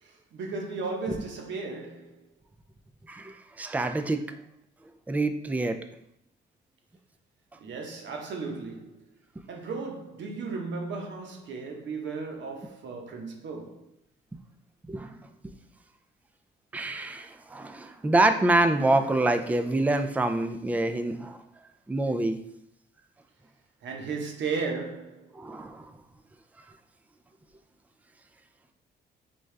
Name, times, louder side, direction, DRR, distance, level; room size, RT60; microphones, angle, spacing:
voice 1, 0.0-2.3 7.6-9.0 9.5-13.9 23.8-25.3, right 4 dB, 65° right, 1.0 m, -35 dB
voice 2, 3.1-4.2 5.1-5.8 14.8-15.3 16.7-21.4 21.9-22.4 25.3-25.9, right 2 dB, 10° right, 0.3 m, -26 dB
5.3 x 2.3 x 3.2 m
cardioid pair, 90°, 20 cm